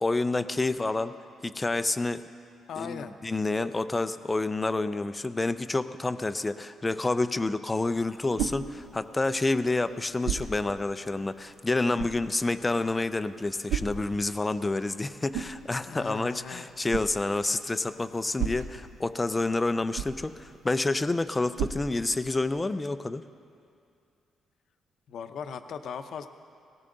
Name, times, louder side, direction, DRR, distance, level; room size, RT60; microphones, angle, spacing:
voice 1, 0.0-1.1 1.4-2.2 2.8-23.2, left 2 dB, 15° left, 12 dB, 0.3 m, -28 dB
voice 2, 2.7-3.2 15.9-16.7 25.1-26.3, left 7 dB, 50° left, 9 dB, 0.6 m, -38 dB
sound 1, 7.7-22.6, right 8 dB, 90° right, 0.8 m, -39 dB
18.0 x 17.0 x 3.9 m, 2.4 s
cardioid pair, 170°, 0 cm